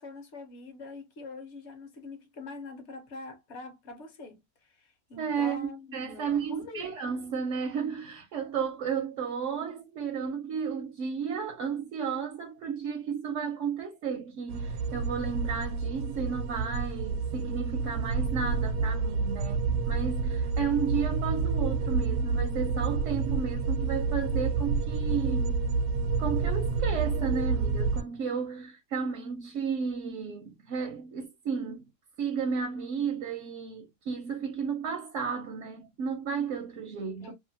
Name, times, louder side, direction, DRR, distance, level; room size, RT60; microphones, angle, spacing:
voice 1, 0.0-6.9 37.2-37.3, left 3 dB, 50° left, 1.0 m, -44 dB
voice 2, 5.2-25.6 26.2-31.9 32.2-37.3, right 6 dB, 65° right, 0.8 m, -33 dB
sound 1, 14.5-28.0, right 4 dB, 85° right, 1.2 m, -29 dB
2.9 x 2.4 x 2.6 m
omnidirectional pair, 1.7 m